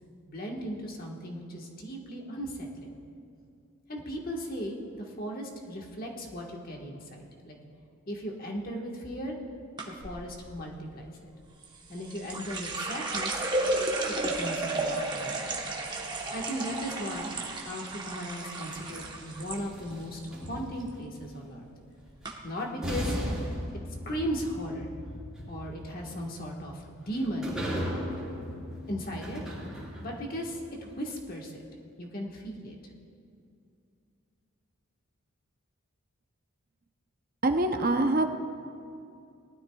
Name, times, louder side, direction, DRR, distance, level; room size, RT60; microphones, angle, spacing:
voice 1, 0.2-3.0 3.9-7.6 8.1-9.4 9.8-11.3 11.9-13.5 14.1-15.6 16.3-17.3 17.6-21.7 22.4-23.2 24.0-25.0 25.5-27.5 28.9-29.4 30.0-31.6 32.0-32.8, equal, 40° left, 0 dB, 1.4 m, -37 dB
sound 1, 9.8-10.2 11.6-19.6 19.9-20.5 20.8-21.1 21.8-21.9 22.2-22.3, right 2 dB, 20° right, 1.0 m, -33 dB
sound 2, 18.7-21.0 22.3-22.4 22.8-30.3, equal, ahead, 3.1 m, -37 dB
voice 2, 37.4-38.3, right 2 dB, 40° right, 6 dB, 0.7 m, -24 dB
19.0 x 12.5 x 2.3 m, 2.4 s
head